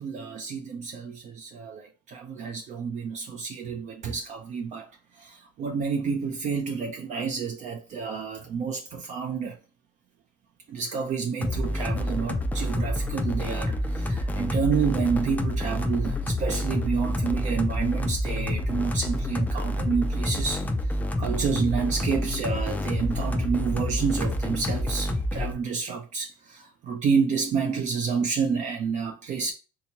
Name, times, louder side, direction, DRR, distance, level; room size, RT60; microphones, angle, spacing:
voice 1, 0.0-4.9 5.2-9.6 10.7-20.6 21.2-29.5, right 5 dB, 50° right, 0.5 m, -29 dB
sound 1, 11.4-25.5, left 1 dB, 10° left, 0.4 m, -28 dB
3.5 x 2.8 x 2.8 m
cardioid pair, 115°, 16 cm